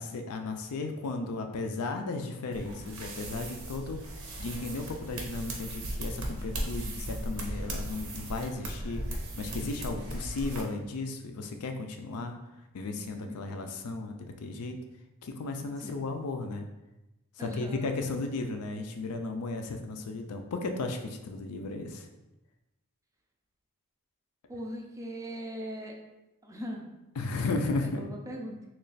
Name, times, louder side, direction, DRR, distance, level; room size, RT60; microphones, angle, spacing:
voice 1, 0.0-12.4 12.7-14.8 15.2-16.7 17.4-22.1 27.2-28.1, left 3 dB, 75° left, 5 dB, 0.4 m, -35 dB
sound 1, 2.5-10.6, right 1 dB, 85° right, 0.8 m, -37 dB
voice 2, 13.3-13.7 15.8-16.0 17.4-17.9 24.5-26.0 26.4-26.8 27.8-28.6, equal, 15° right, 1 dB, 0.4 m, -40 dB
3.2 x 2.3 x 3.9 m, 0.98 s
head